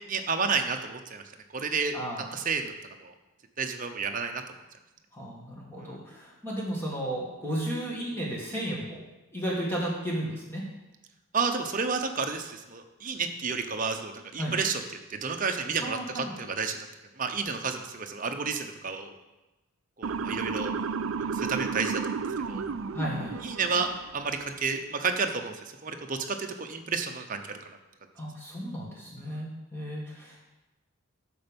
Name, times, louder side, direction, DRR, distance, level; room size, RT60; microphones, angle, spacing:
voice 1, 0.1-1.2 1.5-1.9 2.3-2.7 3.0-3.1 3.6-4.4 11.3-14.8 15.1-16.9 17.2-19.1 20.0-20.7 21.3-22.0 22.5-22.6 23.4-25.6 25.8-27.8 29.2-29.4, right 5 dB, 35° right, 5 dB, 0.8 m, -31 dB
voice 2, 1.9-2.3 5.1-9.0 9.3-10.6 14.4-14.6 15.8-16.3 22.9-23.4 28.2-30.4, right 1 dB, 10° left, -4 dB, 2.0 m, -34 dB
Motor vehicle (road) / Siren, 20.0-24.2, right 5 dB, 60° right, 0.4 m, -32 dB
10.0 x 6.9 x 5.3 m, 1.0 s
head